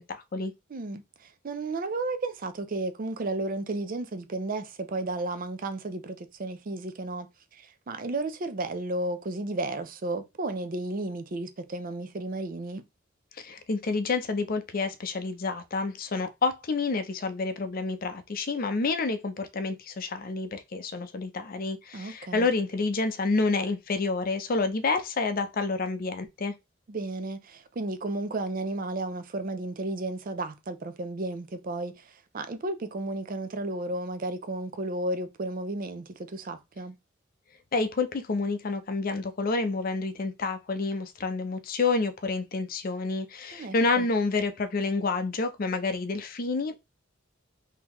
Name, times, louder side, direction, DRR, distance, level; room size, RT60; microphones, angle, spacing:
voice 1, 0.0-0.5 13.4-26.5 37.7-46.8, left 3 dB, 45° left, 0.5 m, -29 dB
voice 2, 0.7-7.3 7.5-12.8 21.9-22.5 26.9-36.9 43.6-44.1, right 2 dB, 45° right, 0.5 m, -33 dB
3.8 x 2.8 x 2.9 m
head